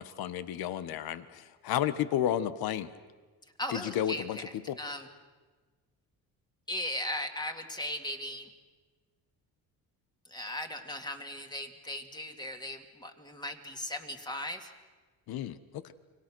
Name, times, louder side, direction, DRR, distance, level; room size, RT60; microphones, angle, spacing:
voice 1, 0.0-2.9 3.7-4.4 4.7-4.8 15.3-15.9, left 11 dB, 80° left, 13 dB, 1.3 m, -32 dB
voice 2, 3.6-4.4 4.8-5.1 6.7-8.5 10.2-14.7, left 1 dB, 10° left, 5 dB, 2.2 m, -37 dB
30.0 x 25.0 x 6.2 m, 1.3 s
cardioid pair, 130°, 36 cm